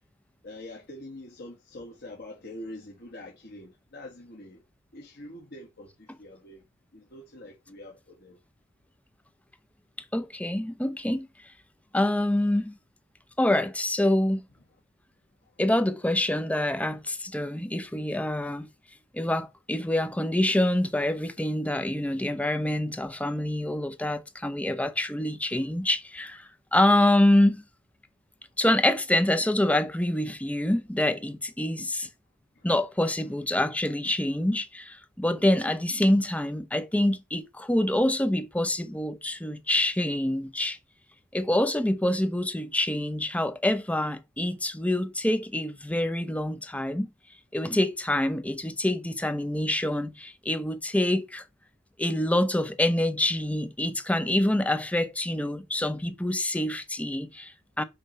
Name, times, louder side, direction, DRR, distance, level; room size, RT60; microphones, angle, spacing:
voice 1, 0.4-4.6 4.9-6.7 6.9-8.4 15.4-15.5 32.5-32.7, left 1 dB, 55° left, 1.7 m, -44 dB
voice 2, 10.1-11.3 11.9-12.7 13.4-14.4 15.6-18.7 19.1-27.6 28.6-32.1 32.6-40.8 41.3-47.1 47.5-51.4 52.0-57.8, left 1 dB, 5° left, 0.6 m, -26 dB
6.8 x 3.2 x 5.5 m
head